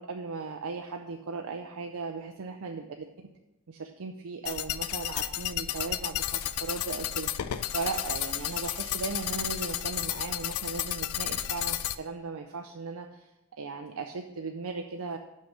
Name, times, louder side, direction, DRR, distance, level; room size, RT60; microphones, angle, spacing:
voice 1, 0.0-2.9 3.7-13.3 13.6-15.2, right 4 dB, 75° right, 4 dB, 0.5 m, -37 dB
sound 1, 4.5-12.0, left 12 dB, 75° left, 0.4 m, -32 dB
sound 2, 6.3-6.6 7.3-10.0 11.4-12.1, left 1 dB, 20° left, 2.2 m, -48 dB
6.2 x 5.5 x 6.1 m, 0.95 s
head